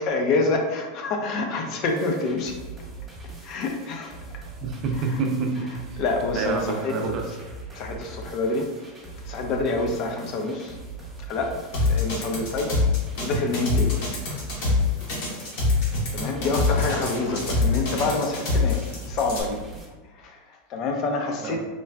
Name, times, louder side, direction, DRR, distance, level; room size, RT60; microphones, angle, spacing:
voice 1, 0.0-2.6 3.4-4.4 5.0-5.2 6.0-6.9 7.7-8.7 9.2-10.8 11.3-12.8 13.2-14.0 16.1-19.6 20.2-21.6, left 3 dB, 45° left, 3 dB, 0.4 m, -27 dB
sound 1, 1.9-19.9, right 3 dB, 10° right, 0.7 m, -41 dB
voice 2, 4.6-6.0 6.3-7.3 10.2-10.3 14.0-14.1 17.4-17.6 21.4-21.6, right 4 dB, 40° right, 2 dB, 0.4 m, -28 dB
sound 2, 11.7-19.4, left 3 dB, 70° left, 1.0 m, -24 dB
3.7 x 2.2 x 2.2 m, 1.2 s
supercardioid pair, 130°, 0 cm